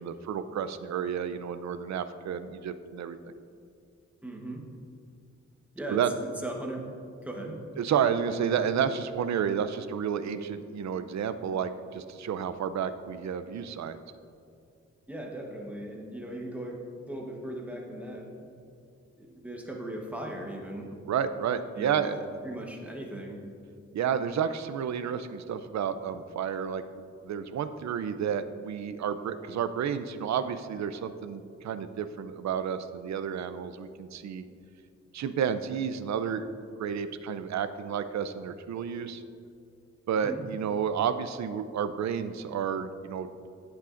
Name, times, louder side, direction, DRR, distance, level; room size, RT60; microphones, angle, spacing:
voice 1, 0.0-3.2 5.9-6.1 7.8-14.0 21.1-22.2 23.9-26.8 27.2-34.4 35.1-36.5 36.8-39.2 40.1-43.3, right 8 dB, 70° right, 10 dB, 0.5 m, -31 dB
voice 2, 4.2-4.6 5.7-6.8 7.2-7.6 15.1-18.5 19.2-21.0 21.8-23.4 40.1-40.4, right 1 dB, 5° right, -1 dB, 1.1 m, -38 dB
15.0 x 8.3 x 2.5 m, 2.4 s
wide cardioid pair, 165°, 29 cm